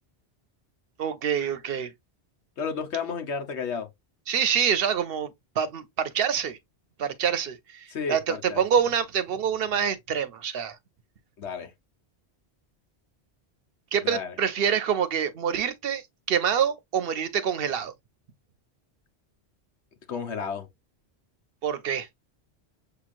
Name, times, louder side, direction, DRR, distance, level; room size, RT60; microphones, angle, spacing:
voice 1, 1.0-1.9 4.3-5.3 5.6-6.6 7.0-10.8 13.9-16.0 16.3-17.9 21.6-22.1, right 8 dB, 65° right, 0.8 m, -26 dB
voice 2, 2.6-3.9 7.9-8.6 11.4-11.7 14.0-14.3 20.1-20.7, left 5 dB, 90° left, 1.3 m, -32 dB
6.6 x 2.9 x 2.5 m
omnidirectional pair, 1.1 m